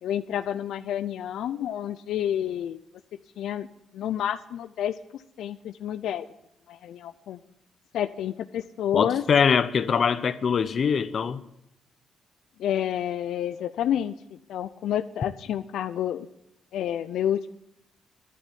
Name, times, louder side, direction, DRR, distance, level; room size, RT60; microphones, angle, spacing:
voice 1, 0.0-2.8 3.4-3.7 3.9-6.2 6.7-7.4 7.9-9.2 12.6-14.1 14.5-16.3 16.7-17.5, left 10 dB, 85° left, 0.5 m, -29 dB
voice 2, 8.9-11.4, left 6 dB, 50° left, 0.8 m, -23 dB
11.0 x 8.9 x 9.2 m
cardioid pair, 100°, 0 cm